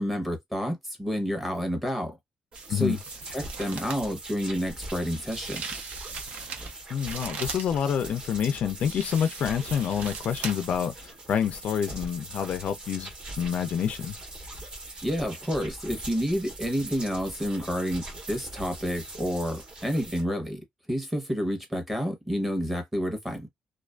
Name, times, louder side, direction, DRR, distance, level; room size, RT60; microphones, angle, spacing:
voice 1, 0.0-2.2 2.7-3.0 3.3-5.6 15.0-20.6 20.9-23.5, equal, 5° right, 0.8 m, -29 dB
sound 1, 2.5-20.2, right 2 dB, 45° right, 1.1 m, -41 dB
sound 2, 2.5-2.7 3.0-4.1 5.3-7.7 8.8-10.8 11.1-11.2, right 5 dB, 75° right, 0.6 m, -39 dB
voice 2, 6.9-13.1 13.4-14.2, left 8 dB, 60° left, 0.3 m, -28 dB
2.4 x 2.4 x 2.2 m
cardioid pair, 155°, 2 cm